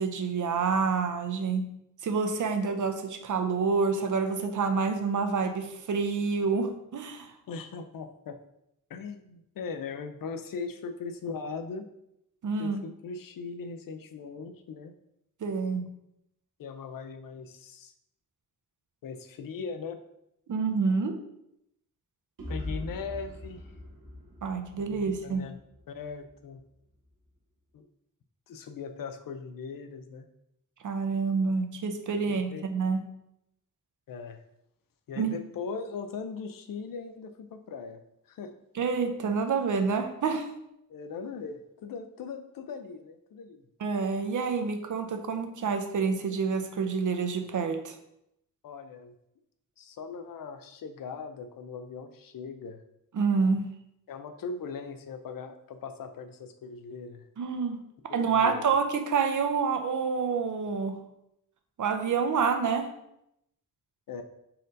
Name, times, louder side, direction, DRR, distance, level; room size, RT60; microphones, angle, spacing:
voice 1, 0.0-1.7 2.0-7.3 12.4-12.8 15.4-15.8 20.5-21.2 24.4-25.4 30.8-33.0 35.2-35.4 38.7-40.5 43.8-48.0 53.1-53.7 57.4-57.8 58.1-61.0 61.8-62.9, right 5 dB, 65° right, 6 dB, 0.6 m, -28 dB
voice 2, 7.5-8.4 8.9-11.8 12.6-14.9 16.6-17.9 19.0-20.0 22.5-23.7 24.7-25.6 25.9-26.6 27.7-27.9 28.5-30.3 32.3-32.6 34.1-34.4 35.1-38.0 38.3-38.5 40.9-43.6 48.6-49.1 49.8-52.8 54.1-57.2 58.1-58.6 64.1-64.2, left 5 dB, 80° left, 7 dB, 0.5 m, -39 dB
sound 1, 22.4-26.3, left 1 dB, 90° right, 1.1 m, -41 dB
4.2 x 2.6 x 3.8 m, 0.80 s
wide cardioid pair, 105°, 33 cm